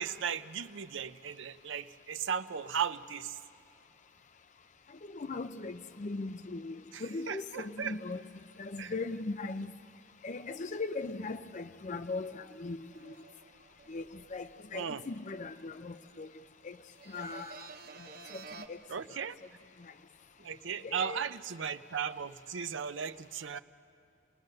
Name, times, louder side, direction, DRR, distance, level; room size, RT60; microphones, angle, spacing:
voice 1, 0.0-3.4 6.9-7.9 8.8-8.9 14.7-15.0 18.9-19.4 20.4-23.6, right 7 dB, 65° right, 0.6 m, -36 dB
voice 2, 5.1-8.2 8.6-9.7 10.2-13.1 13.9-14.0 14.3-16.3 16.6-16.8 17.1-17.6 18.3-18.4 18.7-18.8 20.8-21.2, left 3 dB, 35° left, 0.5 m, -39 dB
sound 1, 12.9-16.5 16.8-18.7, right 4 dB, 50° right, 1.0 m, -52 dB
28.5 x 18.5 x 6.6 m
head